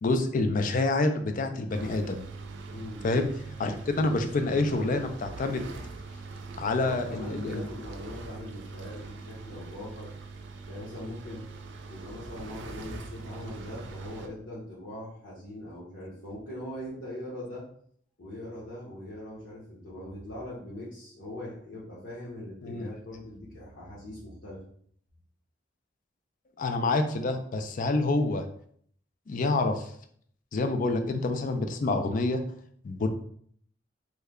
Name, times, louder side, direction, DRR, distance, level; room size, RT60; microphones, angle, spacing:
voice 1, 0.0-2.2 3.0-3.3 3.6-5.6 6.6-7.6 22.6-22.9 26.6-28.4 29.3-29.8 30.5-32.4 32.8-33.1, left 2 dB, 45° left, 6 dB, 0.4 m, -27 dB
sound 1, 1.7-14.3, right 3 dB, 70° right, 0.4 m, -42 dB
voice 2, 2.7-3.0 6.8-10.1 10.7-11.4 11.9-17.6 18.2-24.6, left 1 dB, 75° left, -9 dB, 1.0 m, -41 dB
3.2 x 2.2 x 3.6 m, 0.62 s
head